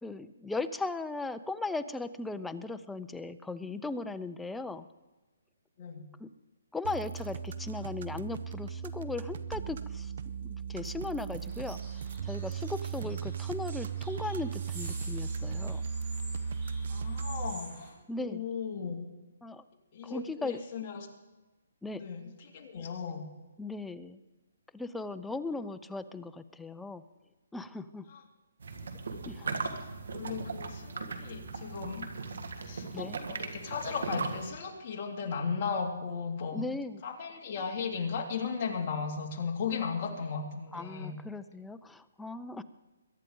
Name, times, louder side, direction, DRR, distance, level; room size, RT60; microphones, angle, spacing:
voice 1, 0.0-4.9 6.2-6.3 6.7-10.1 10.4-11.8 12.2-15.8 18.1-18.4 19.4-19.6 20.0-20.6 21.8-22.0 23.6-24.2 24.7-27.0 27.5-28.1 29.3-29.5 32.9-33.2 36.5-37.0 40.7-42.6, left 3 dB, 5° left, 11 dB, 0.4 m, -37 dB
sound 1, 6.8-17.5, right 6 dB, 55° right, 0.8 m, -37 dB
sound 2, 11.4-17.9, right 2 dB, 25° right, 4.7 m, -48 dB
voice 2, 16.9-19.0 19.9-21.1 21.9-23.2 28.1-28.2 29.4-29.6 30.1-32.2 32.6-36.7 37.0-41.2, left 5 dB, 35° left, 0 dB, 2.4 m, -36 dB
sound 3, 28.6-34.5, right 4 dB, 70° right, 1.8 m, -38 dB
22.5 x 10.5 x 3.8 m, 1.1 s
hypercardioid pair, 160°, 0 cm